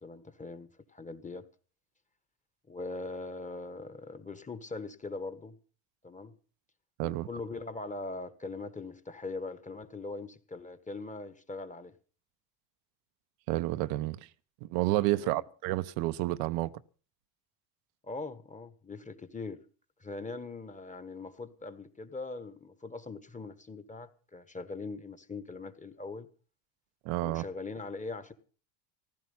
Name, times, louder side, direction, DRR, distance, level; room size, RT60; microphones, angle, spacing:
voice 1, 0.0-1.5 2.7-5.6 6.0-6.3 7.0-11.9 15.1-15.4 18.0-19.6 20.0-26.3 27.2-28.3, left 3 dB, 15° left, 1.5 m, -41 dB
voice 2, 13.5-14.2 14.6-16.7 27.0-27.4, right 18 dB, 70° right, 0.8 m, -30 dB
15.5 x 12.5 x 5.6 m
supercardioid pair, 85°, 48 cm